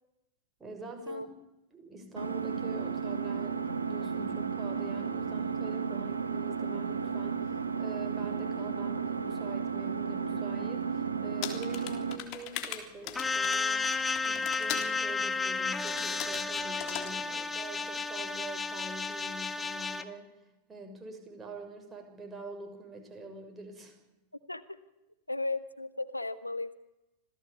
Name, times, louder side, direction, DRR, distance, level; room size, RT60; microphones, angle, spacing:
voice 1, 0.6-1.2 1.7-13.9 14.2-20.3 20.7-24.0, right 3 dB, 15° right, 3 dB, 6.4 m, -45 dB
Engine, 2.2-12.2, right 6 dB, 80° right, 1.8 m, -33 dB
sound 1, 11.4-14.9 15.9-16.4 16.8-17.1, left 11 dB, 40° left, 3.5 m, -39 dB
sound 2, 13.2-20.0, left 4 dB, 10° left, 1.7 m, -32 dB
voice 2, 24.5-24.8 25.3-26.7, left 2 dB, 85° left, 12 dB, 1.3 m, -35 dB
26.5 x 17.5 x 8.7 m, 0.96 s
figure-of-eight pair, 90°, 0 cm